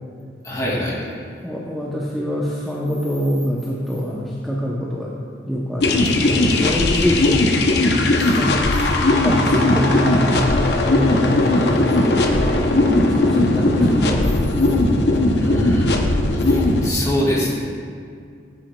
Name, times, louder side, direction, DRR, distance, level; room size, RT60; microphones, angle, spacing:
voice 1, 0.4-1.0 15.4-15.9 16.5-17.6, left 1 dB, 20° left, -6 dB, 2.2 m, -23 dB
voice 2, 1.4-5.1 5.5-7.5 8.3-8.6 9.2-10.5 10.9-12.6 12.9-14.3, equal, ahead, -6 dB, 0.7 m, -25 dB
sound 1, 5.8-16.9, left 2 dB, 60° left, 0.7 m, -18 dB
13.5 x 7.5 x 2.3 m, 2.2 s
head